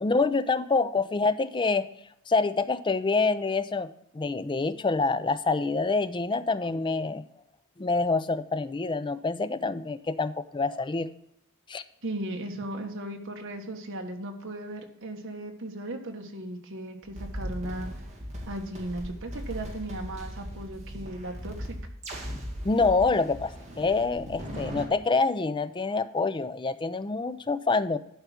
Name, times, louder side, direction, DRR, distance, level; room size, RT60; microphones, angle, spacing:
voice 1, 0.0-1.9 2.3-7.2 7.8-11.1 11.7-11.8 22.6-28.0, left 3 dB, 20° left, 12 dB, 0.4 m, -26 dB
voice 2, 12.0-17.9 18.5-21.8, right 1 dB, 60° right, 4 dB, 1.5 m, -36 dB
sound 1, 17.0-24.9, equal, 30° right, 2.1 m, -38 dB
11.5 x 4.7 x 5.8 m, 0.75 s
head